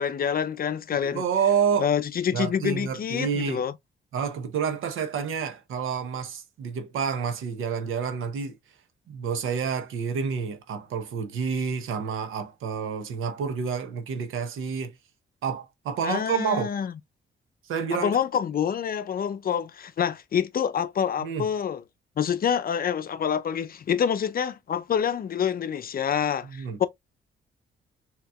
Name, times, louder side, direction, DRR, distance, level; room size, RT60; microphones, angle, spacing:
voice 1, 0.0-1.2 1.8-3.7 16.0-16.9 17.9-21.8 22.2-26.9, left 8 dB, 45° left, 0.5 m, -27 dB
voice 2, 0.9-1.9 2.3-3.6 4.1-8.5 9.1-15.0 15.4-16.7 17.6-18.1 21.2-21.5 26.4-26.8, right 6 dB, 75° right, 0.8 m, -29 dB
4.0 x 2.9 x 2.2 m
cardioid pair, 70°, 21 cm